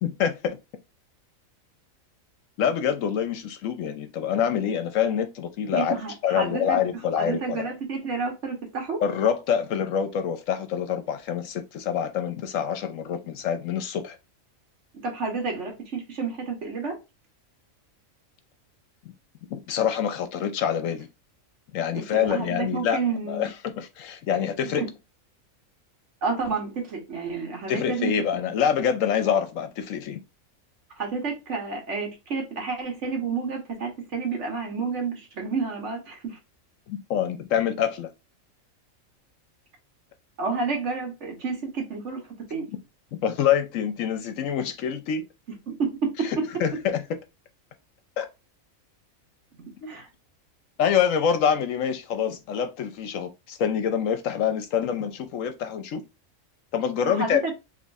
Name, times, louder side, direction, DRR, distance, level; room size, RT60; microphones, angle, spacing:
voice 1, 0.0-0.6 2.6-6.0 6.2-7.7 9.0-14.2 19.5-21.1 21.7-23.0 23.3-24.8 27.7-30.2 36.9-38.1 43.2-45.2 46.6-47.0 48.2-48.3 49.8-50.0 50.8-56.0 56.7-57.4, left 8 dB, 75° left, 1.0 m, -26 dB
voice 2, 5.7-6.8 7.2-9.0 15.0-17.0 21.9-23.5 24.8-24.9 26.2-28.2 31.0-36.4 40.4-42.2 42.5-42.7 45.5-46.8 49.9-50.1 57.1-57.5, right 4 dB, 60° right, 1.4 m, -30 dB
4.3 x 3.1 x 2.4 m
omnidirectional pair, 1.4 m